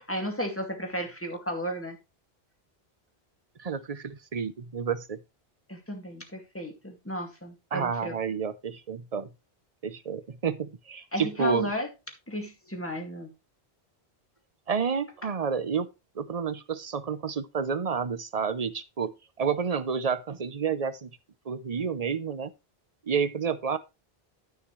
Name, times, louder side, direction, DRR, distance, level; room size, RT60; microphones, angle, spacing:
voice 1, 0.1-2.0 5.7-8.2 11.1-11.9 12.3-13.3, equal, 10° left, 2.2 m, -33 dB
voice 2, 3.6-5.2 7.7-9.3 9.8-11.7 14.7-15.9 16.2-19.1 19.4-21.1 21.5-22.5 23.1-23.8, right 6 dB, 40° right, 0.8 m, -30 dB
12.0 x 6.5 x 3.2 m
omnidirectional pair, 1.1 m